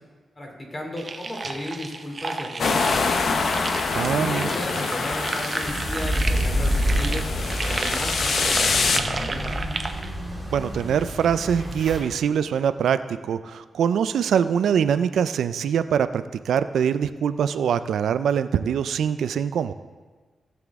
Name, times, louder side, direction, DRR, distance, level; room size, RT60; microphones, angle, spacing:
voice 1, 0.4-3.3 3.9-9.5, left 1 dB, 30° left, 0 dB, 2.5 m, -35 dB
sound 1, 1.0-10.1, right 3 dB, 40° right, 0.7 m, -32 dB
sound 2, 2.6-9.0, left 4 dB, 65° left, 0.7 m, -25 dB
voice 2, 3.9-4.5 10.5-19.7, right 8 dB, 90° right, 12 dB, 0.4 m, -23 dB
sound 3, 5.6-12.0, equal, ahead, 2.9 m, -28 dB
17.5 x 6.1 x 3.6 m, 1.4 s
cardioid pair, 95°, 0 cm